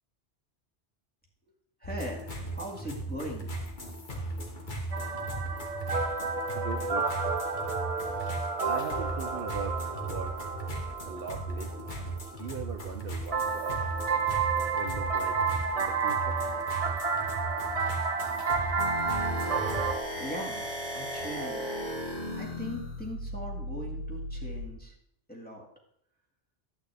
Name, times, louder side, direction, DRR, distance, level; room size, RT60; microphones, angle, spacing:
sound 1, 1.8-20.0, right 2 dB, 45° left, 1.5 m, -37 dB
voice 1, 1.8-3.5 19.8-20.7 20.9-21.7 22.3-24.9 25.3-25.7, equal, 10° left, -3 dB, 2.0 m, -40 dB
sound 2, 4.9-12.3 13.3-19.9, right 5 dB, 35° right, 0.9 m, -31 dB
voice 2, 6.5-7.1 8.6-10.4 11.1-11.9 12.3-13.8 14.8-15.4 15.7-16.4, right 6 dB, 60° right, 6 dB, 0.8 m, -40 dB
sound 3, 18.8-24.7, equal, 60° left, 3.0 m, -36 dB
11.5 x 8.5 x 3.4 m, 0.68 s
omnidirectional pair, 1.2 m